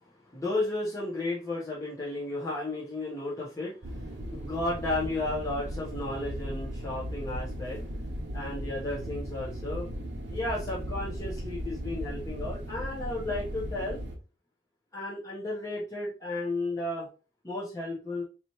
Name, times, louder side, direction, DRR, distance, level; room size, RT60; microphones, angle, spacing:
voice 1, 0.3-7.8 8.3-9.9 10.3-14.0 14.9-17.1 17.4-18.2, left 2 dB, 15° left, -8 dB, 1.0 m, -33 dB
sound 1, 3.8-14.1, equal, 60° right, 1.0 m, -37 dB
4.1 x 3.0 x 3.0 m, 0.34 s
head